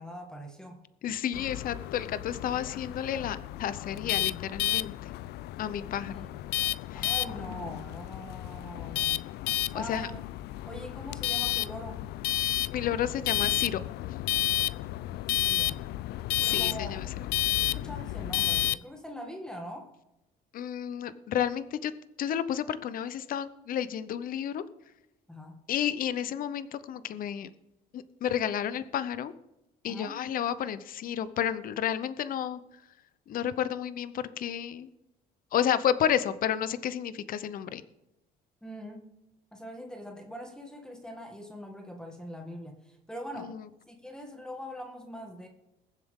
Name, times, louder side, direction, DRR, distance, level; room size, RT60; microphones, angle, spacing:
voice 1, 0.0-0.9 6.1-6.4 6.9-9.2 9.7-10.2 10.6-12.0 15.3-15.8 16.5-17.0 17.6-19.9 25.3-25.6 29.8-30.2 38.6-39.1 39.5-43.6 43.9-45.5, equal, 5° left, 3 dB, 1.8 m, -42 dB
voice 2, 1.0-4.9 5.6-6.3 6.9-7.1 9.7-10.1 12.7-13.8 16.4-16.7 20.5-21.9 22.2-24.6 25.7-27.5 27.9-29.3 29.8-32.6 33.3-34.9 35.5-37.8 43.5-43.6, left 9 dB, 55° left, 14 dB, 0.8 m, -31 dB
sound 1, 1.3-18.8, left 15 dB, 75° left, 0.4 m, -31 dB
21.5 x 7.6 x 3.8 m, 0.92 s
cardioid pair, 110°, 17 cm